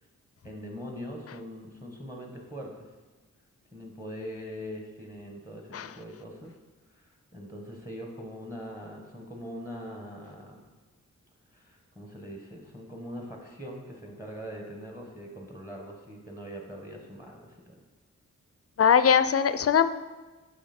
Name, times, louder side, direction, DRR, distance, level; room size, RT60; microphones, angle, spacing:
voice 1, 0.4-2.9 3.7-6.5 6.9-10.6 11.5-17.8, equal, 10° right, 1 dB, 1.3 m, -42 dB
voice 2, 18.8-19.9, left 7 dB, 50° left, 13 dB, 0.4 m, -21 dB
7.1 x 5.8 x 4.3 m, 1.3 s
cardioid pair, 55°, 32 cm